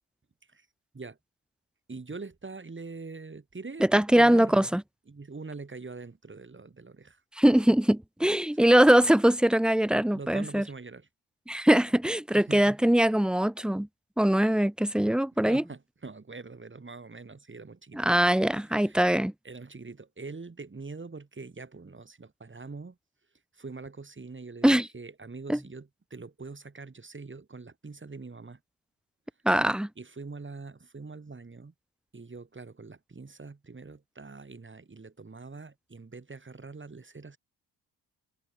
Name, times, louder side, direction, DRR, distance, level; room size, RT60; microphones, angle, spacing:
voice 1, 1.9-4.7 5.1-7.2 8.6-8.7 10.1-11.1 12.3-12.6 15.5-18.2 18.7-19.0 19.4-23.0 23.5-28.6 30.0-31.7 32.1-37.4, right 4 dB, 30° right, 6.4 m, -43 dB
voice 2, 3.8-4.8 7.4-10.6 11.5-13.9 14.2-15.6 17.9-19.3 24.6-24.9 25.5-25.6 29.4-29.9, right 1 dB, ahead, 1.1 m, -22 dB
supercardioid pair, 60°, 38 cm